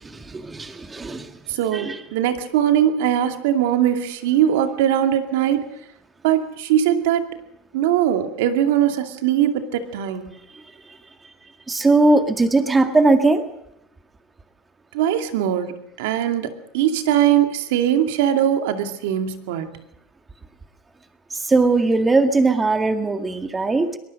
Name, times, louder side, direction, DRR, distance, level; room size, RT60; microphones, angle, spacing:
voice 1, 0.0-1.3 1.7-2.0 11.7-13.4 21.4-24.0, right 3 dB, 15° right, 7 dB, 1.9 m, -19 dB
voice 2, 1.5-5.7 6.2-7.3 7.7-10.3 14.9-19.8, right 10 dB, 80° right, 7 dB, 2.3 m, -21 dB
23.0 x 19.5 x 6.4 m, 0.81 s
supercardioid pair, 140°, 0 cm